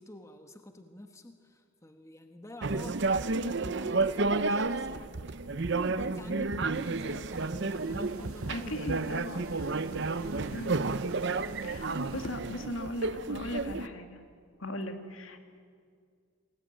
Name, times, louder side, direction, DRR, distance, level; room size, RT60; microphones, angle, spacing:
voice 1, 0.0-5.1 5.6-8.7 9.0-9.7 10.3-11.1, left 1 dB, 15° left, 6 dB, 1.2 m, -48 dB
sound 1, 2.6-13.9, right 3 dB, 55° right, 0.7 m, -31 dB
Fmaj-calm noise, 6.7-12.2, right 4 dB, 85° right, 2.1 m, -50 dB
voice 2, 8.4-9.5 10.5-10.8 11.6-14.2 14.6-15.6, left 1 dB, 70° left, 6 dB, 2.5 m, -38 dB
27.5 x 20.0 x 9.0 m, 2.1 s
head